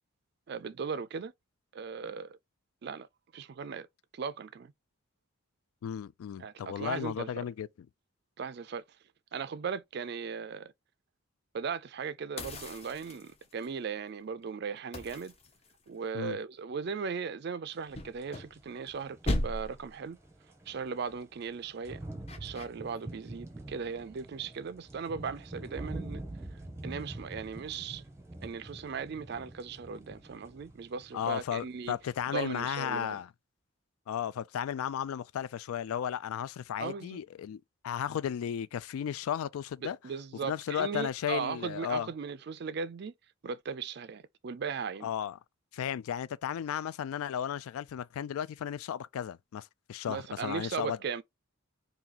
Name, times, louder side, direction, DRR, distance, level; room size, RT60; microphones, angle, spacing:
voice 1, 0.5-1.3 1.7-2.4 2.8-3.1 3.3-3.9 4.1-4.7 6.4-7.5 8.4-8.8 9.3-10.7 11.5-15.3 15.9-20.2 20.7-22.0 22.4-26.2 26.8-28.0 28.4-32.0 32.3-33.2 36.8-37.2 39.8-43.1 43.4-45.1 50.1-51.2, right 6 dB, 50° right, 0.3 m, -38 dB
voice 2, 5.8-7.7 16.1-16.4 31.1-33.3 34.1-40.0 40.4-42.1 45.0-45.4 45.7-51.0, left 9 dB, 80° left, 0.3 m, -34 dB
sound 1, 12.4-13.7 14.9-16.1 17.9-18.9 19.2-19.9 22.3-22.7, left 1 dB, 30° left, 0.6 m, -36 dB
sound 2, 18.1-19.7 19.9-32.2 32.6-32.7, right 1 dB, 10° right, 0.7 m, -45 dB
2.8 x 2.7 x 3.8 m
head